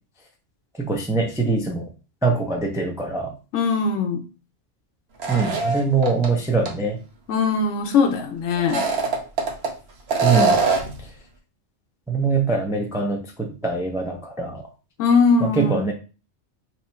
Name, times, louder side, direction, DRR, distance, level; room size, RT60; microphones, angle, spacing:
voice 1, 0.8-1.9 2.2-3.3 5.3-7.0 10.2-10.6 11.0-11.1 12.1-14.6 15.4-15.9, right 4 dB, 5° right, 1 dB, 0.3 m, -23 dB
voice 2, 3.5-4.2 7.3-8.8 15.0-15.8, left 4 dB, 80° left, 3 dB, 0.9 m, -20 dB
sound 1, 5.2-6.3 6.7-6.8 8.6-9.7 10.1-11.0, right 4 dB, 65° right, 1.0 m, -22 dB
3.0 x 2.6 x 4.2 m, 0.33 s
omnidirectional pair, 1.3 m